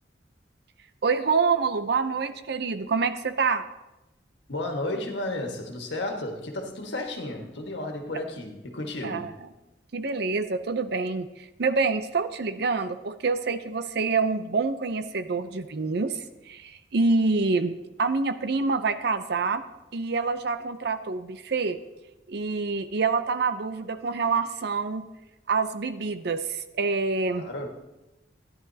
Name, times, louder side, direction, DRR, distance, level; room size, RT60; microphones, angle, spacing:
voice 1, 1.0-3.6 9.0-9.3 9.9-19.6 19.9-21.8 22.3-25.0 25.5-27.5, right 4 dB, 65° right, 10 dB, 0.6 m, -26 dB
voice 2, 4.5-9.3 27.3-27.7, left 1 dB, 75° left, 2 dB, 1.6 m, -33 dB
13.5 x 10.5 x 2.8 m, 0.99 s
head